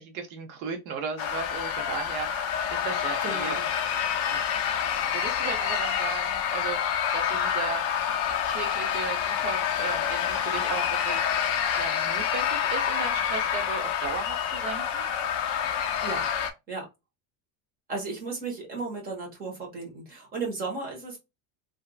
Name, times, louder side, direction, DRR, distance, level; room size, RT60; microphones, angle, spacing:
voice 1, 0.0-3.6 4.3-4.4 4.8-7.8 8.5-11.3 11.7-15.1, right 5 dB, 70° right, 0.8 m, -36 dB
sound 1, 1.2-16.5, left 8 dB, 35° left, 0.4 m, -28 dB
voice 2, 3.2-3.6 16.0-16.2 16.7-16.8 17.9-21.2, right 3 dB, 20° right, 1.2 m, -34 dB
3.3 x 2.7 x 2.3 m
cardioid pair, 180°, 44 cm